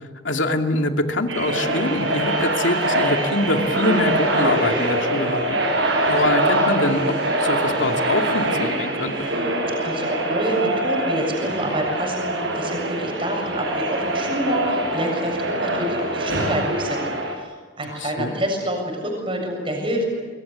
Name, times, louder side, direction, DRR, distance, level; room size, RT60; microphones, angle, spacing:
voice 1, 0.0-5.6 6.1-9.3 18.2-18.3, left 2 dB, 85° left, 4 dB, 2.5 m, -24 dB
sound 1, 1.3-17.3, right 1 dB, 85° right, 7.0 m, -23 dB
voice 2, 9.8-12.3 12.5-20.0, right 1 dB, 30° right, 2 dB, 7.2 m, -27 dB
26.5 x 23.5 x 8.3 m, 1.5 s
head